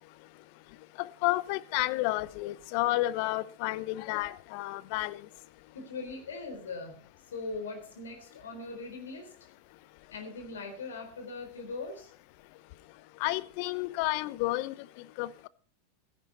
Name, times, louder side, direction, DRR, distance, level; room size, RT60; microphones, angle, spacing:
voice 1, 0.0-5.3 12.9-15.5, left 18 dB, 55° left, 0.7 m, -32 dB
voice 2, 5.7-7.0 7.3-9.3 10.1-12.1, left 3 dB, 75° left, 3.8 m, -40 dB
15.5 x 10.5 x 4.2 m
hypercardioid pair, 95°, 0 cm